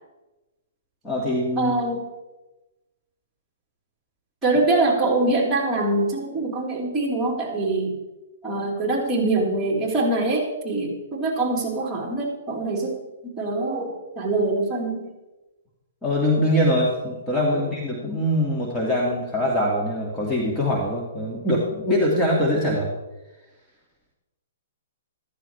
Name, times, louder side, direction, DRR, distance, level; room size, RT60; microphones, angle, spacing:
voice 1, 1.0-1.7 16.0-22.9, equal, 10° left, -4 dB, 2.2 m, -23 dB
voice 2, 1.6-2.0 4.4-8.0 8.4-13.0 13.2-15.1 17.5-17.7, right 2 dB, 15° right, -3 dB, 4.0 m, -24 dB
14.5 x 14.0 x 3.4 m, 1.1 s
hypercardioid pair, 150°, 0 cm